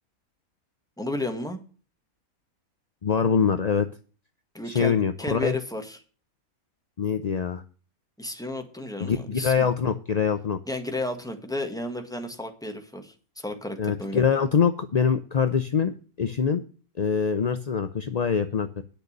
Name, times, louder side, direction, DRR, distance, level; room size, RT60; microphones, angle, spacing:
voice 1, 1.0-1.6 4.5-6.0 8.2-9.6 10.7-14.2, left 1 dB, 5° left, 5 dB, 1.6 m, -33 dB
voice 2, 3.0-3.9 4.7-5.5 7.0-7.6 9.0-10.6 13.8-16.6 17.0-18.8, left 6 dB, 45° left, 9 dB, 0.5 m, -24 dB
10.0 x 6.7 x 6.6 m, 0.39 s
omnidirectional pair, 1.5 m